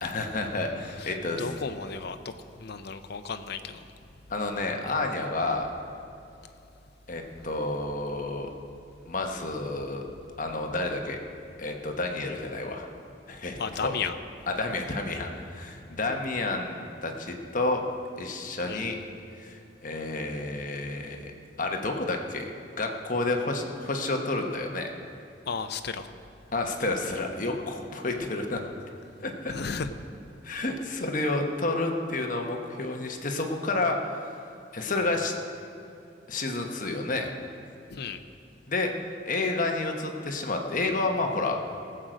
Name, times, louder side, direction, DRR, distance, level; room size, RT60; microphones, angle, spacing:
voice 1, 0.0-1.4 4.3-5.7 7.1-8.5 9.1-10.0 10.4-11.2 11.6-12.9 13.3-13.9 14.6-17.8 18.2-19.0 19.4-21.3 21.6-24.9 26.5-28.6 29.2-29.5 30.4-34.2 34.7-35.3 36.3-37.3 38.7-38.9 39.3-41.6, left 2 dB, 45° left, 3 dB, 1.1 m, -30 dB
voice 2, 1.0-3.9 13.6-14.2 18.7-18.9 25.5-26.1 29.5-29.9 37.9-38.2, left 5 dB, 65° left, 9 dB, 0.7 m, -34 dB
18.0 x 7.7 x 5.1 m, 2.6 s
head